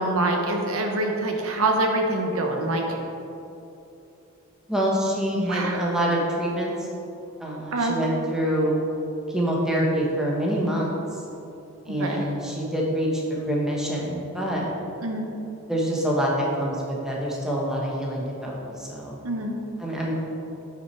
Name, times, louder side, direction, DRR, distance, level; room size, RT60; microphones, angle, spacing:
voice 1, 0.0-3.0 5.3-5.9 7.7-8.0 11.9-12.2 15.0-15.3 19.2-19.6, right 2 dB, 70° right, 2 dB, 1.0 m, -25 dB
voice 2, 4.7-6.9 7.4-8.8 9.3-11.2 11.9-14.7 15.7-19.2 19.8-20.1, right 1 dB, 5° right, -4 dB, 1.2 m, -26 dB
9.0 x 6.3 x 4.5 m, 2.8 s
head